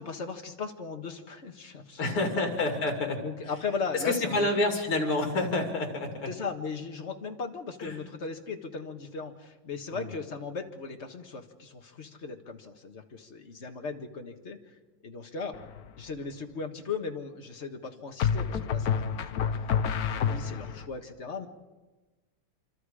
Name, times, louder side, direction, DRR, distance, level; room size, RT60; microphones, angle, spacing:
voice 1, 0.0-2.5 3.2-4.5 6.3-14.7 15.0-15.6 16.0-19.7 20.0-21.5, left 4 dB, 35° left, 4 dB, 1.6 m, -37 dB
voice 2, 2.0-3.2 4.0-6.3 7.8-8.0 9.9-10.1, left 2 dB, 75° left, 3 dB, 3.9 m, -28 dB
sound 1, 15.5-16.0 18.2-20.9, left 7 dB, 60° left, 1.1 m, -29 dB
26.0 x 25.5 x 5.0 m, 1.2 s
omnidirectional pair, 2.4 m